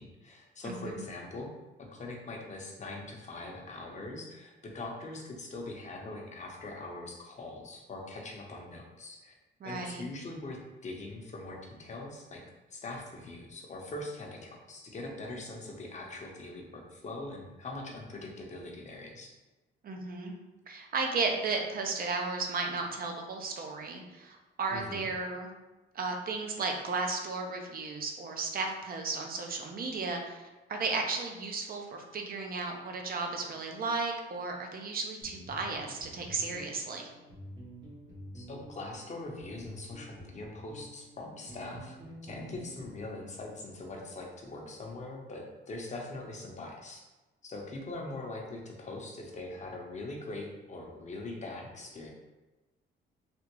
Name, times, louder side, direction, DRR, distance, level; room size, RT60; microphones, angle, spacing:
voice 1, 0.0-1.5 1.8-9.3 9.6-12.4 12.7-19.3 24.7-25.1 38.3-42.0 42.2-47.0 47.4-52.1, left 2 dB, 35° left, 0 dB, 0.8 m, -42 dB
voice 2, 0.6-1.0 9.6-10.0 19.8-20.3 20.7-25.5 25.9-37.1, right 3 dB, 50° right, 2 dB, 0.6 m, -34 dB
sound 1, 35.2-43.7, right 1 dB, 65° right, 1.2 m, -49 dB
3.4 x 2.4 x 3.0 m, 1.1 s
cardioid pair, 90°, 20 cm